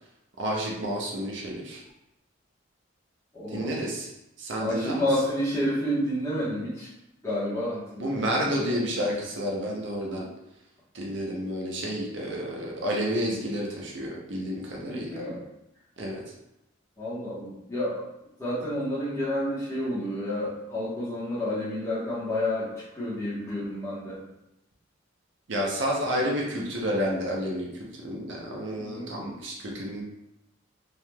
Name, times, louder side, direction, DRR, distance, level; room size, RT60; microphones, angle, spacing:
voice 1, 0.4-1.8 3.5-4.1 4.4-5.1 8.0-10.3 10.9-15.1 16.0-16.2 25.5-27.7 28.0-30.0, equal, 60° right, -2 dB, 0.6 m, -30 dB
voice 2, 3.3-3.8 4.6-6.9 7.2-8.2 8.5-8.8 14.8-15.4 17.0-18.0 18.4-24.2 28.8-29.1, left 1 dB, 15° left, -9 dB, 1.0 m, -30 dB
3.2 x 2.8 x 2.2 m, 0.89 s
head